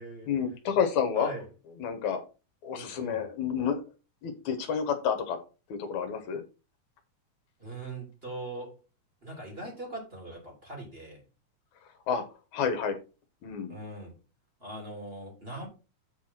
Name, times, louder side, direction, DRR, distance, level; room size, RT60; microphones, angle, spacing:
voice 1, 0.3-1.3 1.8-2.2 2.6-3.8 4.2-5.4 5.7-6.4 12.1-12.2 12.5-13.0 13.4-13.8, left 7 dB, 75° left, 7 dB, 2.6 m, -29 dB
voice 2, 1.1-1.5 2.7-3.2 7.6-8.8 9.2-11.2 13.7-14.1 14.6-15.7, right 1 dB, 20° right, -1 dB, 3.4 m, -41 dB
8.2 x 4.7 x 5.8 m, 0.31 s
omnidirectional pair, 3.5 m